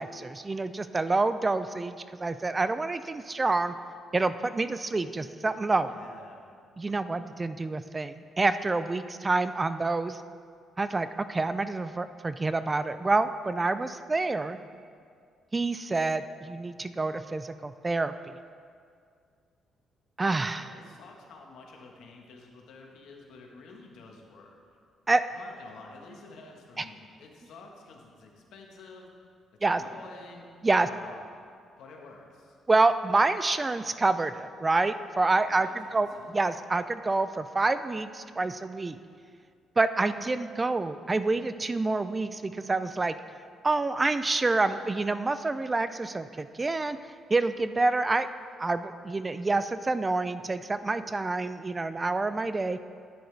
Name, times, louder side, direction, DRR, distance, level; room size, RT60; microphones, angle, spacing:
voice 1, 0.0-3.7 4.1-5.9 6.8-10.2 10.8-14.6 15.5-18.4 20.2-20.7 25.1-25.2 26.8-26.9 29.6-29.8 30.6-30.9 32.7-36.1 36.3-39.0 39.8-43.2 43.6-47.0 47.3-48.3 48.6-52.8, right 3 dB, 25° right, 12 dB, 0.3 m, -27 dB
voice 2, 5.8-6.5 20.5-24.6 25.3-29.1 29.6-30.5 30.8-31.2 31.8-32.6 35.3-36.4, left 3 dB, 80° left, 1 dB, 1.4 m, -49 dB
10.0 x 9.4 x 3.4 m, 2.2 s
cardioid pair, 90°, 0 cm